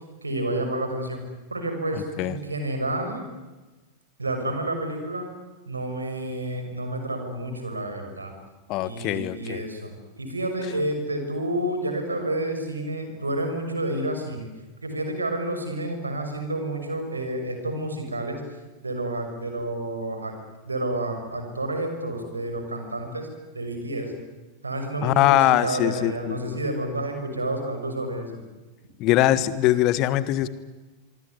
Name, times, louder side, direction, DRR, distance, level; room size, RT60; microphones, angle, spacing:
voice 1, 0.2-1.2 1.5-3.2 4.2-5.3 5.7-8.3 8.8-14.5 14.8-18.4 18.8-20.4 20.6-23.3 23.5-24.1 24.6-28.4, right 1 dB, 80° right, 6 dB, 6.2 m, -30 dB
voice 2, 1.9-2.3 8.7-9.6 25.0-26.6 29.0-30.5, left 14 dB, 40° left, 16 dB, 1.5 m, -22 dB
25.0 x 24.0 x 9.8 m, 1.2 s
figure-of-eight pair, 90°, 0 cm